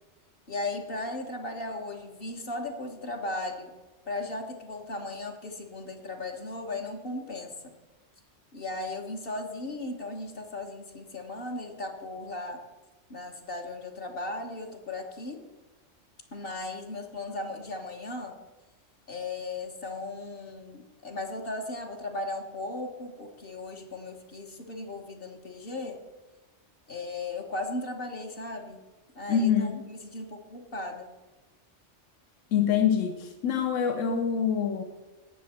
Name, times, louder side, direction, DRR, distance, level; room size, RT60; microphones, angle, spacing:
voice 1, 0.5-3.7 4.1-7.7 8.5-12.6 13.1-15.4 16.3-18.3 19.1-26.0 26.9-28.8 29.1-31.1, left 2 dB, 50° left, 2 dB, 1.5 m, -36 dB
voice 2, 29.3-29.8 32.5-34.8, left 7 dB, 85° left, 6 dB, 1.2 m, -25 dB
17.5 x 6.3 x 4.3 m, 1.2 s
omnidirectional pair, 1.3 m